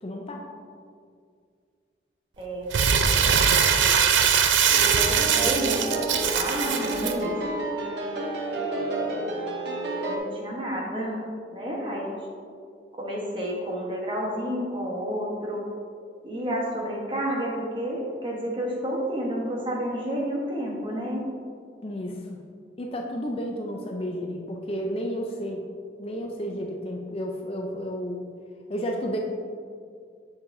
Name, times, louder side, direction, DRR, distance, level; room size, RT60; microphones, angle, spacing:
voice 1, 0.0-0.4 21.8-22.4 22.8-25.6 26.0-28.3 28.7-29.2, equal, 30° left, 1 dB, 0.4 m, -32 dB
voice 2, 2.4-3.4 3.8-4.0 4.9-7.7 8.5-9.3 10.0-11.2 11.5-12.2 13.0-15.6 16.2-21.3, equal, 25° right, -2 dB, 1.0 m, -31 dB
Crumpling crinkling, 2.7-7.1, right 7 dB, 75° right, 0.5 m, -21 dB
sound 1, 4.7-10.2, right 2 dB, 60° right, 0.8 m, -30 dB
7.1 x 6.5 x 2.6 m, 2.2 s
head